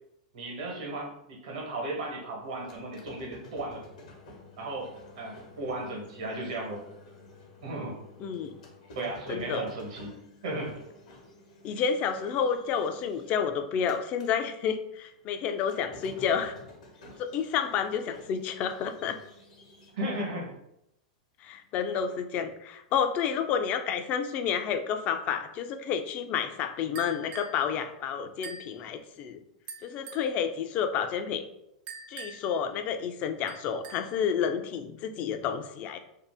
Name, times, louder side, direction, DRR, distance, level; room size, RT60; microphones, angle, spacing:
voice 1, 0.3-3.8 4.6-6.8 7.6-8.0 8.9-10.1 10.4-10.8 19.9-20.5, right 2 dB, 75° right, -1 dB, 1.1 m, -35 dB
sound 1, 2.4-14.3 14.7-19.9, left 2 dB, 80° left, 1.0 m, -52 dB
voice 2, 8.2-8.6 9.3-9.7 11.6-16.5 17.2-19.2 21.4-29.4 29.8-31.4 32.1-36.0, left 7 dB, 40° left, 8 dB, 0.3 m, -30 dB
sound 2, 27.0-27.6 28.4-28.7 29.7-30.3 31.9-32.6 33.5-34.2, right 5 dB, 40° right, 0.4 m, -44 dB
2.6 x 2.1 x 3.4 m, 0.82 s
hypercardioid pair, 105°, 4 cm